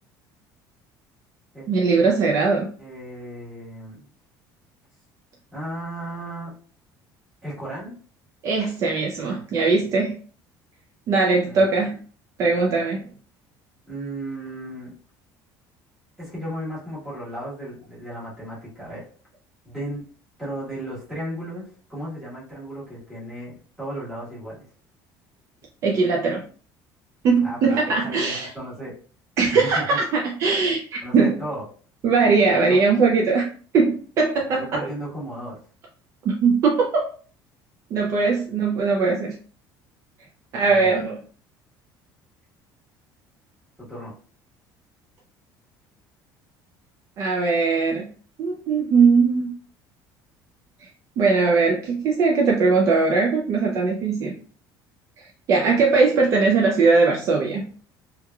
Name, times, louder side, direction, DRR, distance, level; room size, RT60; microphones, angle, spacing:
voice 1, 1.7-2.7 8.4-10.2 11.1-12.0 12.4-13.0 25.8-26.4 27.2-28.5 29.4-31.4 32.0-33.5 33.7-34.9 36.3-37.1 37.9-39.3 40.5-41.2 47.2-48.1 48.4-49.5 50.8-50.9 51.2-54.3 55.2-57.7, right 4 dB, 40° right, -1 dB, 0.4 m, -20 dB
voice 2, 2.8-4.0 5.5-6.5 7.4-8.0 11.5-11.6 13.9-14.9 16.2-19.1 19.6-20.1 20.4-24.6 27.4-27.8 28.0-28.9 29.4-30.0 31.0-31.6 32.5-32.8 34.5-35.6 40.6-40.9 43.8-44.1, right 1 dB, 5° right, -9 dB, 1.2 m, -35 dB
3.1 x 2.3 x 2.2 m, 0.43 s
cardioid pair, 180°, 8 cm